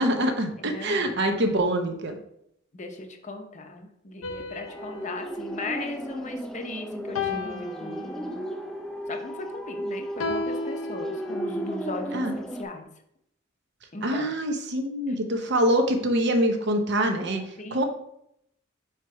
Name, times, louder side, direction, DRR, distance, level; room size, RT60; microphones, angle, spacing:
voice 1, 0.0-2.2 12.1-12.3 14.0-17.4 17.7-17.8, right 1 dB, 60° right, 5 dB, 0.8 m, -24 dB
voice 2, 0.6-1.3 2.7-8.5 9.1-12.9 13.9-14.3 15.1-15.2 17.6-17.8, left 2 dB, 35° left, 5 dB, 0.7 m, -38 dB
sound 1, 4.2-6.6 7.2-8.6 10.2-11.7, left 4 dB, 80° left, 0.6 m, -35 dB
sound 2, 4.6-12.6, equal, 5° left, 0.4 m, -34 dB
4.6 x 4.6 x 4.7 m, 0.76 s
head